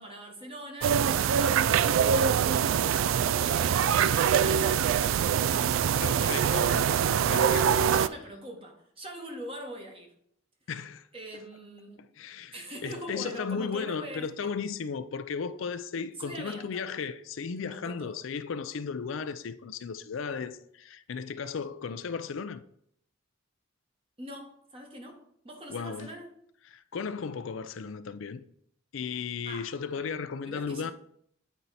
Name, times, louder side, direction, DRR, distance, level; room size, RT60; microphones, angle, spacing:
voice 1, 0.0-5.7 6.2-6.7 7.3-10.1 11.1-12.1 12.5-14.5 15.9-16.9 17.7-18.2 24.2-26.3 29.4-30.2 30.5-30.9, right 1 dB, 30° right, 1.3 m, -44 dB
sound 1, 0.8-8.1, right 8 dB, 75° right, 0.3 m, -24 dB
voice 2, 6.0-6.9 7.3-8.1 10.7-11.1 12.2-12.6 12.8-22.6 25.7-26.1 26.7-28.4 28.9-30.9, left 5 dB, 75° left, 0.4 m, -35 dB
8.2 x 4.4 x 4.1 m
head